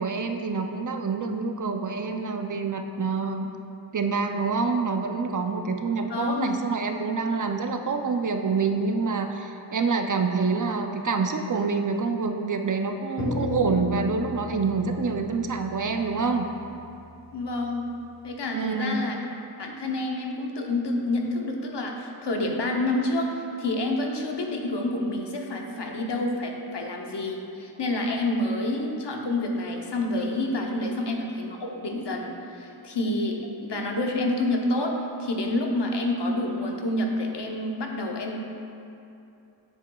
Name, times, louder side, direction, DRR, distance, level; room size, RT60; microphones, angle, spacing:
voice 1, 0.0-3.5 3.9-16.5 18.5-19.0 30.7-30.8, right 4 dB, 45° right, 5 dB, 0.5 m, -27 dB
voice 2, 6.1-6.5 17.3-17.9 18.2-19.2 19.6-38.5, left 2 dB, 70° left, 1 dB, 0.8 m, -28 dB
sound 1, 13.2-17.7, left 1 dB, 40° left, 1.1 m, -34 dB
7.3 x 7.1 x 2.3 m, 2.7 s
wide cardioid pair, 45°, 43 cm